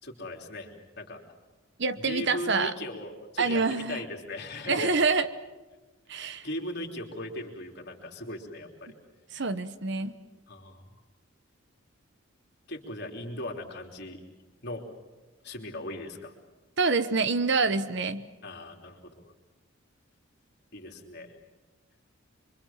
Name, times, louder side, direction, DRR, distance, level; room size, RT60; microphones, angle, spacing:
voice 1, 0.0-1.2 2.0-4.9 6.1-8.9 10.5-10.9 12.7-14.2 14.6-14.9 15.4-16.3 18.4-19.1 20.7-21.3, left 1 dB, 50° left, 1 dB, 3.4 m, -38 dB
voice 2, 1.8-2.7 3.4-4.0 4.7-5.3 6.1-6.5 9.3-10.1 16.8-18.3, right 4 dB, 55° right, 12 dB, 1.0 m, -26 dB
25.5 x 24.0 x 7.4 m, 1.2 s
head